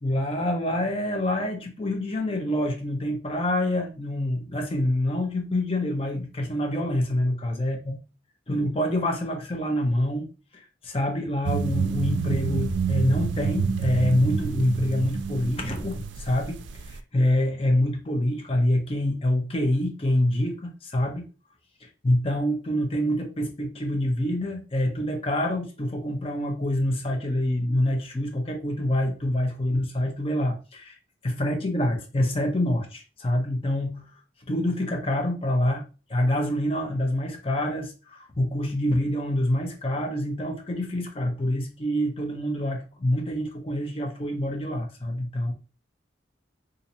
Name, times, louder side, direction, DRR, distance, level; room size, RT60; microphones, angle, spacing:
voice 1, 0.0-8.0 8.5-21.3 21.8-31.0 31.2-34.1 34.5-45.5, left 1 dB, 30° left, 0.7 m, -26 dB
sound 1, 11.4-17.0, right 5 dB, 75° right, 0.4 m, -28 dB
2.8 x 2.5 x 4.1 m
head